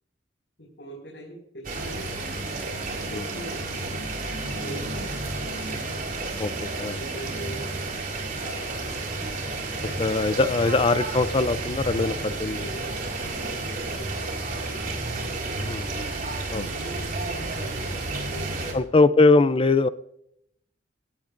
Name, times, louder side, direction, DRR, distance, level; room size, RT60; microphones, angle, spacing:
voice 1, 0.6-2.1 3.0-3.6 4.5-5.8 6.9-7.7 8.4-9.0 9.8-10.5 12.0-15.8 16.5-19.1, equal, 75° left, -2 dB, 5.7 m, -42 dB
sound 1, 1.6-18.7, right 2 dB, 50° right, 4.3 m, -31 dB
voice 2, 6.4-7.0 10.0-12.1 12.4-12.6 15.6-16.1 16.5-16.6 18.7-19.9, left 3 dB, 30° left, 14 dB, 0.5 m, -21 dB
18.0 x 17.5 x 2.6 m, 0.74 s
head